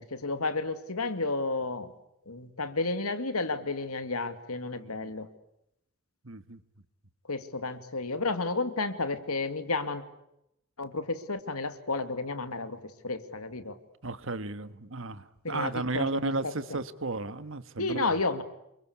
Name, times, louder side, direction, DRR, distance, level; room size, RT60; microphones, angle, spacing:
voice 1, 0.0-1.9 2.3-5.3 7.3-10.0 10.8-13.8 15.4-16.5 17.8-18.4, left 3 dB, 85° left, 10 dB, 2.5 m, -32 dB
voice 2, 4.8-5.1 6.2-6.6 14.0-18.1, right 2 dB, 60° right, 12 dB, 1.5 m, -34 dB
28.0 x 23.5 x 8.5 m, 0.82 s
head